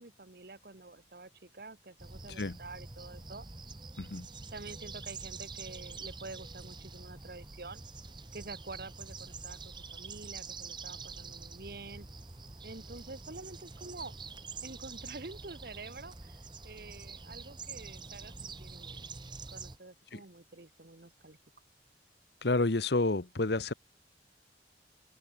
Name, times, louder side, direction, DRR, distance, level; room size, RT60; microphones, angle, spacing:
voice 1, 0.0-3.5 4.5-7.8 8.3-12.1 12.6-14.1 14.6-19.1 19.5-21.4, right 3 dB, 55° right, 1.4 m, -48 dB
sound 1, 2.0-19.8, right 4 dB, 25° right, 1.2 m, -46 dB
voice 2, 4.0-4.3 20.1-20.2 22.4-23.7, left 2 dB, 65° left, 1.1 m, -29 dB
open air
head